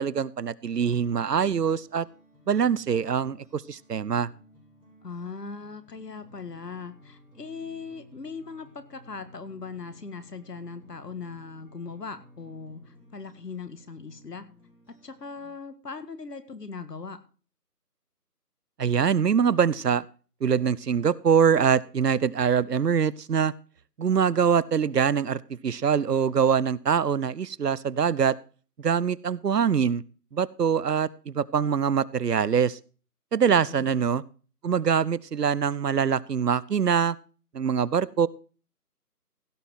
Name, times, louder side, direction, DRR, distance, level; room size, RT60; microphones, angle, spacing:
voice 1, 0.0-2.1 2.5-4.3 18.8-20.0 20.4-23.5 24.0-28.4 28.8-30.0 30.3-32.8 33.3-34.2 34.6-37.2 37.5-38.3, right 7 dB, 80° right, 22 dB, 0.8 m, -24 dB
sound 1, 0.7-15.5, left 1 dB, 5° left, 2.8 m, -55 dB
voice 2, 5.0-14.5 15.0-17.2 33.7-33.9, left 4 dB, 80° left, 12 dB, 1.8 m, -39 dB
16.0 x 5.6 x 6.2 m, 0.38 s
figure-of-eight pair, 175°, 48 cm